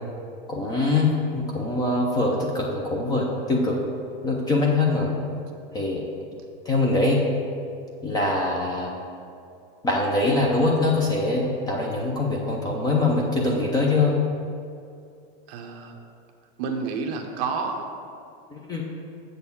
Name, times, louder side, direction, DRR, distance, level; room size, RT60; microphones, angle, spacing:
voice 1, 0.5-3.8 4.2-5.1 5.7-6.0 6.7-7.3 8.0-8.9 9.8-14.1 18.5-18.8, left 2 dB, 15° left, -1 dB, 0.5 m, -23 dB
voice 2, 5.0-5.3 15.5-16.0 16.6-17.9, right 5 dB, 40° right, 4 dB, 0.8 m, -30 dB
7.8 x 4.2 x 7.0 m, 2.5 s
supercardioid pair, 160°, 30 cm